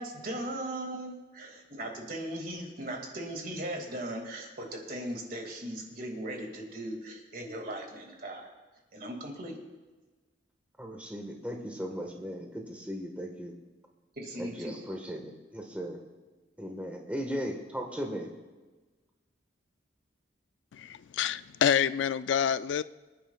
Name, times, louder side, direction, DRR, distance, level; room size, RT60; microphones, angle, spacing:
voice 1, 0.0-8.5 8.9-9.6 14.2-14.8, right 1 dB, 50° right, 1 dB, 2.3 m, -38 dB
voice 2, 10.8-13.5 14.4-16.0 16.6-18.3, equal, 10° right, 1 dB, 1.4 m, -37 dB
voice 3, 20.7-22.8, left 8 dB, 75° left, 15 dB, 0.3 m, -27 dB
25.0 x 10.0 x 2.4 m, 1.3 s
head